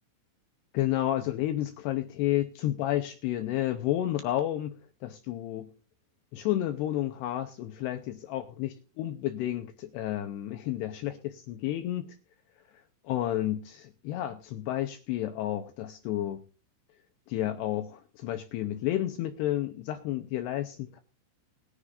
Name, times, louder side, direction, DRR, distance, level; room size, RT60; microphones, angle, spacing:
voice 1, 0.7-5.7 6.3-12.1 13.0-16.4 17.3-21.0, left 13 dB, 90° left, 8 dB, 2.4 m, -31 dB
21.5 x 9.9 x 2.5 m, 0.33 s
omnidirectional pair, 5.7 m